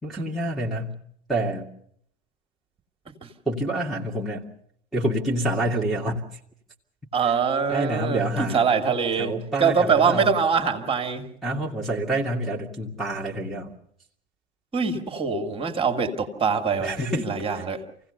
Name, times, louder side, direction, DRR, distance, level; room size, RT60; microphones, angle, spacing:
voice 1, 0.0-1.0 1.3-1.7 3.5-4.5 4.9-6.2 7.7-8.6 9.2-10.3 11.4-13.7 16.8-17.3 17.5-17.6, right 1 dB, ahead, -6 dB, 2.2 m, -27 dB
voice 2, 7.1-9.3 9.6-11.3 14.7-17.8, right 6 dB, 15° right, 5 dB, 2.4 m, -23 dB
27.5 x 17.0 x 6.7 m, 0.70 s
figure-of-eight pair, 85°, 35 cm